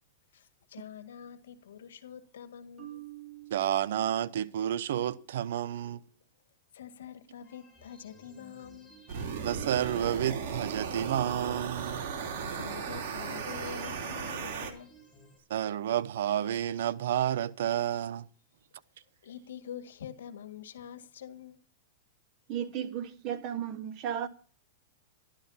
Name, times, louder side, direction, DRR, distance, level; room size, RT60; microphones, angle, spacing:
voice 1, 0.3-3.0 6.7-9.0 12.4-14.9 19.2-21.6, left 8 dB, 85° left, 1.7 m, -45 dB
Marimba xylophone, 2.8-4.8, right 16 dB, 20° right, 3.2 m, -49 dB
voice 2, 3.5-6.0 9.4-12.1 15.5-18.3, right 10 dB, 70° right, 0.7 m, -30 dB
sound 1, 7.4-15.4, equal, ahead, 7.8 m, -57 dB
sound 2, 9.1-14.7, right 6 dB, 50° right, 2.9 m, -36 dB
voice 3, 22.5-24.3, right 9 dB, 35° right, 1.4 m, -34 dB
13.0 x 11.5 x 5.6 m
hypercardioid pair, 145°, 0 cm